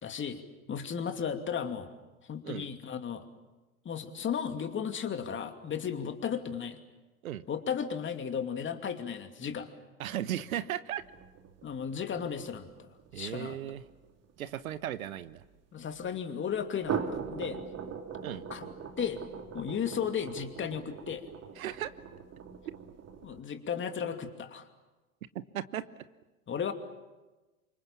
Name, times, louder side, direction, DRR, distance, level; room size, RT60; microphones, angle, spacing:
voice 1, 0.0-0.4 0.7-1.9 2.3-3.2 3.8-6.8 7.5-9.7 11.6-12.9 13.2-13.6 15.7-17.0 17.3-17.6 18.5-18.7 19.0-19.2 19.5-21.2 23.2-24.6 26.5-26.7, left 7 dB, 25° left, 6 dB, 2.7 m, -34 dB
voice 2, 10.0-11.0 13.1-13.8 14.4-15.4 18.2-18.4 21.6-21.9 25.5-25.8, right 11 dB, 75° right, 14 dB, 1.2 m, -36 dB
sound 1, 11.0-15.5 16.7-23.4, right 7 dB, 35° right, 2.8 m, -41 dB
28.5 x 25.5 x 7.4 m, 1.1 s
hypercardioid pair, 85°, 42 cm